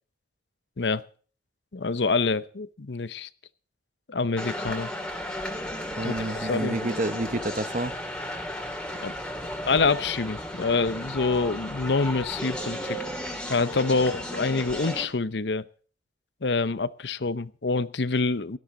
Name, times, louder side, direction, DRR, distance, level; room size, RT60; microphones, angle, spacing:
voice 1, 1.7-3.3 4.1-4.9 6.0-6.8 9.0-9.1 9.6-13.0 13.5-15.7 16.4-18.6, left 4 dB, 80° left, 16 dB, 0.8 m, -26 dB
sound 1, 4.4-15.1, equal, 5° left, 2.5 m, -34 dB
voice 2, 6.0-8.0, right 2 dB, 45° right, 13 dB, 1.0 m, -29 dB
17.0 x 13.5 x 3.9 m, 0.41 s
head